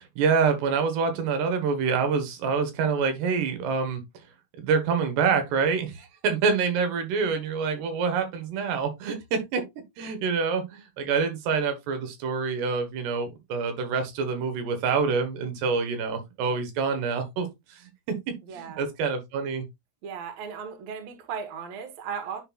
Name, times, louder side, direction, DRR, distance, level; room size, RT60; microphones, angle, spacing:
voice 1, 0.0-4.0 4.6-9.6 10.0-19.6, right 5 dB, 85° right, 3.4 m, -26 dB
voice 2, 18.5-18.9 20.0-22.4, right 6 dB, 60° right, 1.9 m, -36 dB
9.9 x 4.3 x 2.3 m
omnidirectional pair, 4.6 m